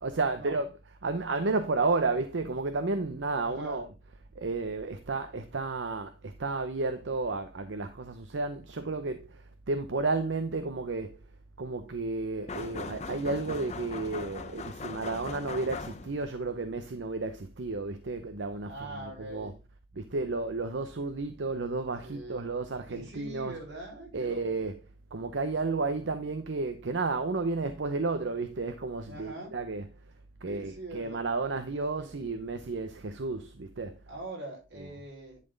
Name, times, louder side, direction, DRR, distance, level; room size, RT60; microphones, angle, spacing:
voice 1, 0.0-0.7 1.0-3.9 4.4-11.2 11.6-19.5 19.9-23.6 24.1-24.8 25.1-29.8 30.4-34.0 34.8-34.9, right 3 dB, 85° right, 0.7 m, -32 dB
voice 2, 3.4-3.8 16.3-16.5 18.6-19.6 22.0-22.5 22.9-24.6 29.1-29.5 30.4-31.2 31.7-32.1 34.1-35.4, right 2 dB, 70° right, 4.8 m, -43 dB
sound 1, 12.5-16.3, left 4 dB, 35° left, 0.6 m, -40 dB
10.5 x 4.2 x 3.9 m
head